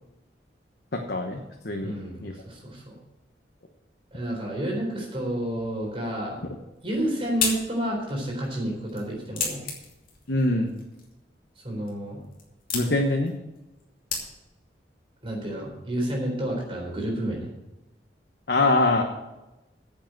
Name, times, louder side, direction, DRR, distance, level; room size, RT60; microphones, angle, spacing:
voice 1, 0.9-1.9 2.2-2.3 10.3-10.7 12.7-13.3 18.5-19.0, left 2 dB, 70° left, 2 dB, 1.2 m, -23 dB
voice 2, 1.8-3.0 4.1-6.4 6.8-9.6 11.6-12.2 15.2-17.5, right 1 dB, 30° right, -1 dB, 4.0 m, -30 dB
sound 1, 6.7-14.7, left 5 dB, 50° left, 2.9 m, -36 dB
10.0 x 7.5 x 7.7 m, 0.98 s
head